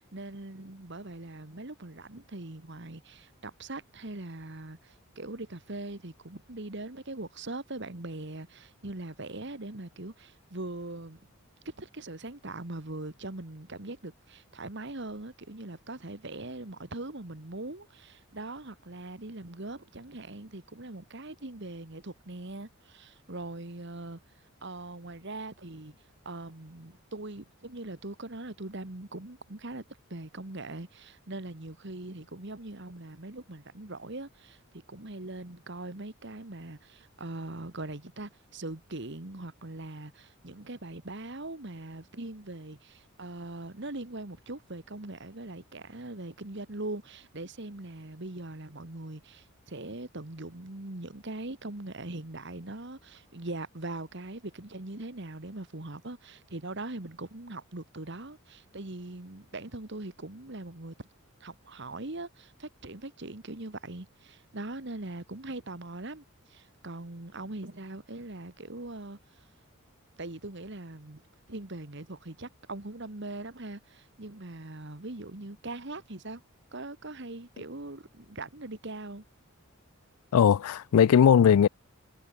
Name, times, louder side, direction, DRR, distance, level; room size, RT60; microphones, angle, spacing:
voice 1, 0.0-11.2 11.6-24.2 24.6-25.9 26.2-29.8 30.1-34.6 34.9-61.1 61.4-69.5 70.2-71.2 71.5-76.4 76.7-79.2, right 2 dB, 55° right, 1.8 m, -41 dB
voice 2, 80.3-81.7, left 8 dB, 85° left, 0.3 m, -19 dB
head